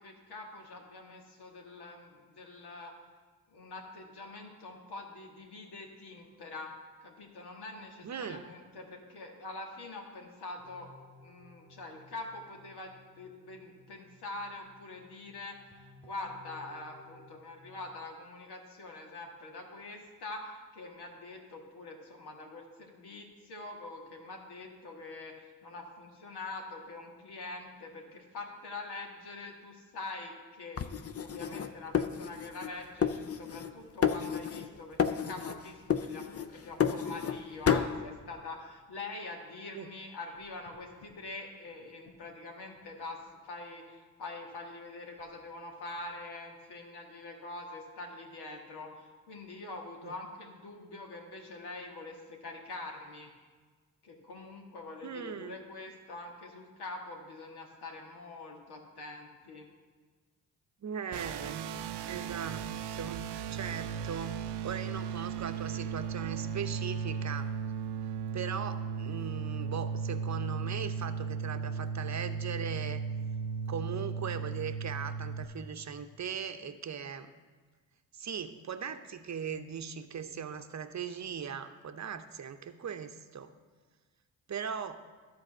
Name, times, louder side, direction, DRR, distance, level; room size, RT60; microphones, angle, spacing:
voice 1, 0.0-2.9 3.5-6.7 7.0-10.9 11.2-53.3 54.0-59.7, left 2 dB, 70° left, 1 dB, 1.7 m, -44 dB
voice 2, 8.0-8.4 39.7-39.9 50.0-50.1 55.0-55.6 60.8-61.8 62.1-67.5 68.3-73.0 73.7-77.3 78.1-83.5 84.5-85.1, right 7 dB, 40° right, 9 dB, 0.8 m, -39 dB
sound 1, 10.6-17.4, left 1 dB, 5° left, 1.2 m, -58 dB
sound 2, 30.8-32.7 33.0-33.7 34.0-34.7 35.0-35.6 35.9-37.4 37.7-37.9, left 7 dB, 35° left, 0.6 m, -31 dB
sound 3, 61.1-75.4, right 6 dB, 75° right, 0.6 m, -36 dB
12.0 x 4.0 x 6.5 m, 1.5 s
hypercardioid pair, 40°, 41 cm